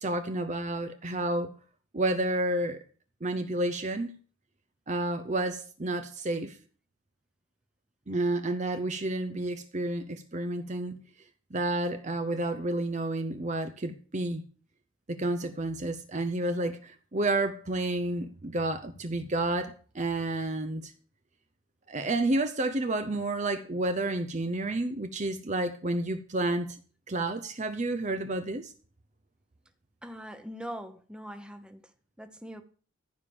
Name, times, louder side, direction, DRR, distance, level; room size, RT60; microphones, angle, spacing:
voice 1, 0.0-1.5 1.9-2.8 3.2-4.1 4.9-6.6 8.1-11.0 11.5-14.4 15.1-20.9 21.9-26.8 27.1-28.7, right 2 dB, 35° right, 0.7 m, -30 dB
voice 2, 30.0-32.6, equal, 5° right, 1.0 m, -42 dB
14.5 x 5.1 x 7.0 m
head